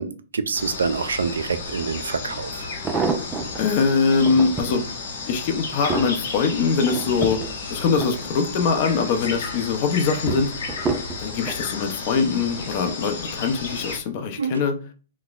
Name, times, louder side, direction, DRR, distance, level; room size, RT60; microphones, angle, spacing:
voice 1, 0.0-2.7 14.4-14.6, right 5 dB, 90° right, 0.3 m, -26 dB
sound 1, 0.5-14.0, left 4 dB, 70° left, 0.9 m, -33 dB
sound 2, 2.6-3.6 4.1-4.8 5.3-8.8 9.1-9.6 10.3-11.6 12.4-12.8 13.1-13.2, right 4 dB, 20° right, 0.4 m, -29 dB
voice 2, 3.6-4.8 5.3-10.5 11.2-14.7, left 5 dB, 45° left, 0.6 m, -22 dB
4.1 x 2.1 x 2.4 m
hypercardioid pair, 135°, 0 cm